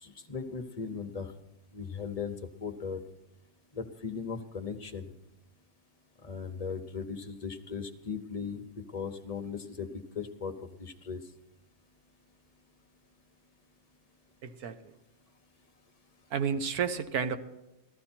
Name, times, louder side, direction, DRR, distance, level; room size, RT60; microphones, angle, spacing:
voice 1, 0.0-1.3 1.7-3.0 3.7-5.1 6.2-8.6 8.9-11.2, left 5 dB, 35° left, 6 dB, 0.6 m, -38 dB
voice 2, 14.4-14.9 16.3-17.4, right 7 dB, 70° right, 9 dB, 1.4 m, -31 dB
15.0 x 13.5 x 4.4 m, 0.92 s
omnidirectional pair, 1.7 m